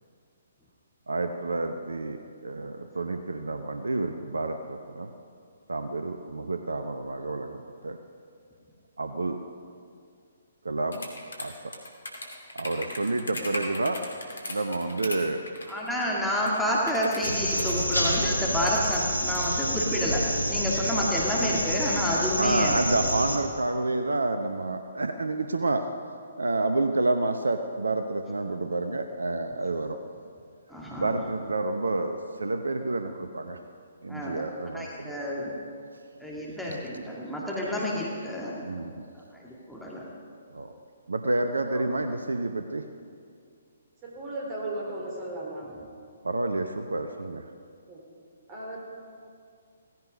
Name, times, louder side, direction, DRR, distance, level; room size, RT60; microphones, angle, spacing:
voice 1, 1.1-5.1 5.7-8.0 9.0-9.4 10.6-11.1 11.4-11.8 12.5-14.0 14.5-15.5 22.4-25.9 26.4-30.0 31.0-33.6 34.0-35.1 36.7-36.8 38.6-39.0 40.5-40.7 41.1-42.9 46.2-47.5, right 2 dB, 70° right, 7 dB, 0.9 m, -29 dB
sound 1, 10.9-15.2 15.5-16.0 16.4-19.6, left 2 dB, 70° left, 2.6 m, -38 dB
voice 2, 15.7-23.0 30.7-31.1 34.1-34.5 34.7-35.6 36.2-38.7 39.2-40.1 41.7-41.8, left 1 dB, ahead, -6 dB, 2.2 m, -29 dB
sound 2, 17.2-23.4, equal, 90° right, 2.8 m, -28 dB
voice 3, 44.0-45.7 47.9-48.0 48.5-48.8, right 1 dB, 25° right, -3 dB, 4.3 m, -35 dB
17.0 x 15.5 x 5.2 m, 2.3 s
figure-of-eight pair, 130°, 0 cm